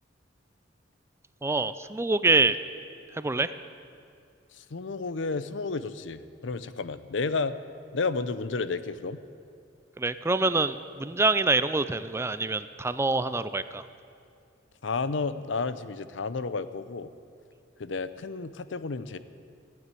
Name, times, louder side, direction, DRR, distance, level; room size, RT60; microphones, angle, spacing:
voice 1, 1.4-2.6 3.1-3.5 10.0-13.8, right 3 dB, 15° right, 13 dB, 0.4 m, -25 dB
voice 2, 4.5-7.6 7.9-9.2 14.8-17.1 17.8-19.2, left 4 dB, 70° left, 13 dB, 0.7 m, -31 dB
16.0 x 9.3 x 9.2 m, 2.4 s
head